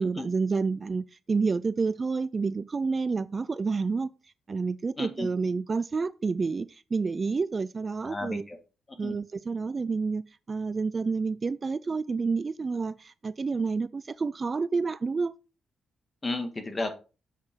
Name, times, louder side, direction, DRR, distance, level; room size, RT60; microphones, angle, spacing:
voice 1, 0.0-4.1 4.5-8.4 9.0-15.3, right 4 dB, 35° right, 0.3 m, -29 dB
voice 2, 5.0-5.3 8.0-8.6 9.0-9.2 16.2-16.9, left 2 dB, 25° left, 1.7 m, -33 dB
7.6 x 5.7 x 4.5 m
cardioid pair, 95°, 0 cm